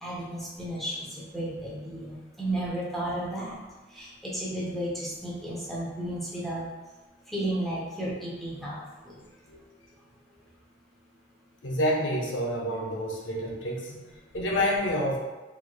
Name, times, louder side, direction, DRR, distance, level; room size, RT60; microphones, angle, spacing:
voice 1, 0.0-1.1 1.3-3.6 3.9-6.6 7.3-8.8 9.0-9.1, right 1 dB, ahead, -7 dB, 0.7 m, -33 dB
voice 2, 11.6-15.2, equal, 85° left, -2 dB, 0.7 m, -28 dB
3.5 x 3.0 x 2.3 m, 1.2 s
head